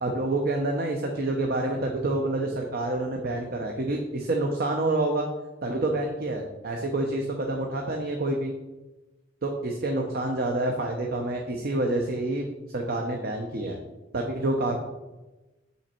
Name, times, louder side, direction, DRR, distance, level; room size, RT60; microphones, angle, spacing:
voice 1, 0.0-5.3 5.6-8.5 9.4-12.5 12.7-13.8 14.1-14.8, right 2 dB, 55° right, 2 dB, 0.8 m, -28 dB
7.2 x 5.6 x 4.4 m, 1.1 s
head